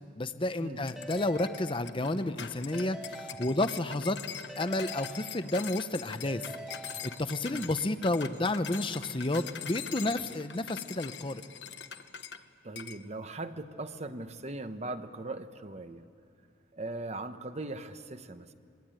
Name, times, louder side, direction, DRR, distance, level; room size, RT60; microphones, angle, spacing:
voice 1, 0.2-4.2 4.6-6.4 6.9-11.4, left 2 dB, 25° left, 11 dB, 0.8 m, -31 dB
sound 1, 0.9-12.4 12.8-13.0, left 8 dB, 65° left, 1.1 m, -43 dB
Keyboard (musical) / Ringtone, 1.0-2.3 2.7-4.0 4.5-5.8 6.3-7.6, right 1 dB, ahead, 1.1 m, -46 dB
voice 2, 12.6-16.0 16.7-18.5, right 2 dB, 35° right, 9 dB, 1.0 m, -39 dB
25.5 x 22.5 x 9.0 m, 2.3 s
head